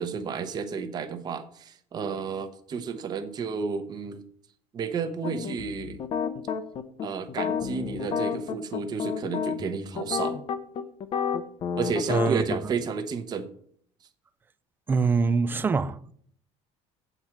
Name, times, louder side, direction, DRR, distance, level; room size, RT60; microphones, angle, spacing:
voice 1, 0.0-4.2 4.7-6.0 7.0-10.4 11.8-13.5, right 5 dB, 30° right, 0.8 m, -31 dB
sound 1, 5.2-12.6, left 7 dB, 40° left, 0.7 m, -30 dB
voice 2, 12.1-12.7 14.9-16.1, right 4 dB, 15° right, 0.3 m, -25 dB
8.1 x 4.4 x 7.2 m
cardioid pair, 150°, 13 cm